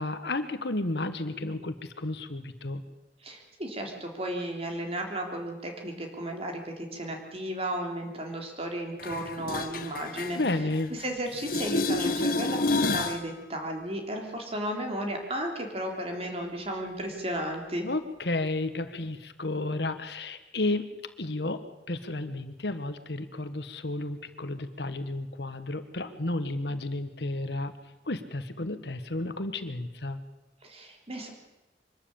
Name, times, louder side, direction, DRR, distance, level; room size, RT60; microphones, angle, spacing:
voice 1, 0.0-2.8 10.4-10.9 17.8-20.9 21.2-21.6 21.9-27.7 28.1-30.2, left 2 dB, 70° left, 10 dB, 1.4 m, -32 dB
voice 2, 3.2-17.9 30.6-31.3, right 1 dB, 35° right, 2 dB, 3.4 m, -34 dB
sound 1, 9.0-11.1 11.3-13.2 19.0-19.1, left 2 dB, 55° left, 1.3 m, -29 dB
24.0 x 13.0 x 8.7 m, 1.1 s
head